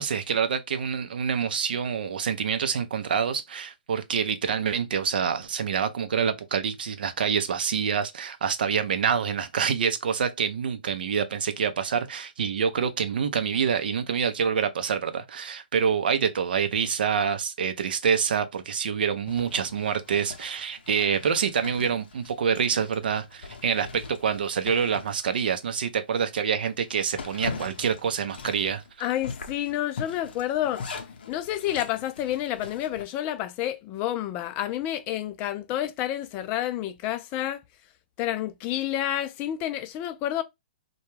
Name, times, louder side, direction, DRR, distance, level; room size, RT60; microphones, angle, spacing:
voice 1, 0.0-28.8, right 7 dB, 65° right, 0.5 m, -26 dB
Zipper (clothing), 19.2-25.9 26.3-26.4 26.8-33.0, left 5 dB, 65° left, 0.6 m, -41 dB
voice 2, 29.0-30.8 31.3-37.6 38.2-40.4, left 12 dB, 30° left, 0.4 m, -29 dB
2.2 x 2.2 x 3.1 m
hypercardioid pair, 125°, 5 cm